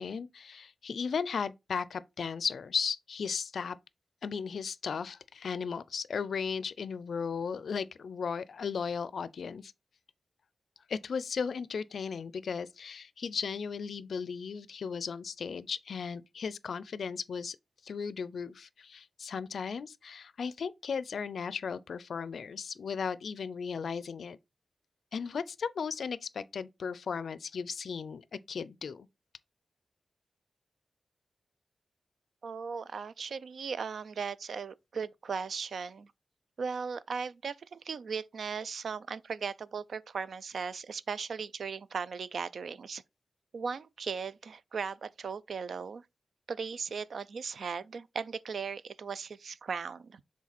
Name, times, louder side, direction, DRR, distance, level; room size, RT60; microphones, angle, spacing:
voice 1, 0.0-3.8 4.2-9.7 10.9-17.6 17.8-24.4 25.1-29.1, left 6 dB, 70° left, 0.4 m, -36 dB
voice 2, 32.4-36.1 36.6-43.0 43.5-46.0 46.5-50.2, right 5 dB, 70° right, 0.4 m, -37 dB
7.3 x 3.6 x 4.2 m
wide cardioid pair, 170°, 0 cm